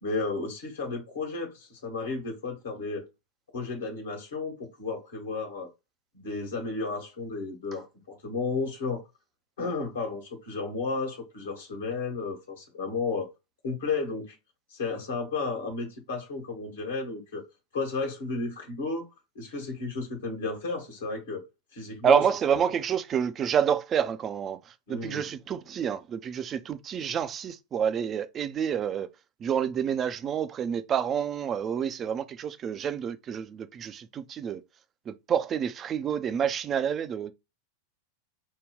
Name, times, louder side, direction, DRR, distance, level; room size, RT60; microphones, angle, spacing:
voice 1, 0.0-3.1 3.5-5.7 6.1-9.0 9.6-13.3 13.6-14.4 14.7-17.4 17.7-19.1 19.3-21.5 21.7-22.2 24.9-25.3, left 3 dB, 65° left, 1.4 m, -33 dB
voice 2, 22.0-29.1 29.4-34.6 35.1-37.3, right 8 dB, 25° right, 0.5 m, -28 dB
5.2 x 2.2 x 3.6 m
figure-of-eight pair, 90°, 0 cm